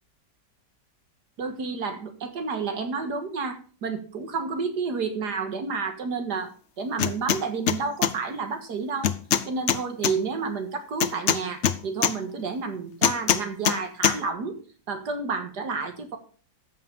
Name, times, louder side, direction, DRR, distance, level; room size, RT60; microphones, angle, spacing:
voice 1, 1.4-6.5 6.8-9.1 9.5-14.6 14.9-16.2, right 4 dB, 65° right, 7 dB, 2.1 m, -30 dB
sound 1, 7.0-7.4 7.7-8.1 9.0-10.1 11.0-12.1 13.0-13.8 14.0-14.2, left 9 dB, 65° left, 0.7 m, -22 dB
13.0 x 5.8 x 5.3 m, 0.41 s
omnidirectional pair, 1.9 m